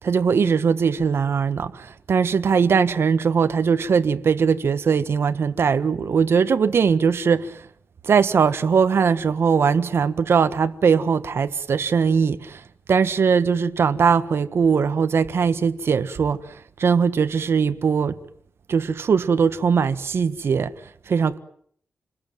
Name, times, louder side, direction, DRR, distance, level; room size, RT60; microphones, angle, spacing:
voice 1, 0.0-7.6 8.0-12.6 12.9-16.4 16.8-18.2 18.7-20.7 21.1-21.4, right 6 dB, 60° right, 1.5 m, -20 dB
28.0 x 20.5 x 9.2 m
wide cardioid pair, 120°, 5 cm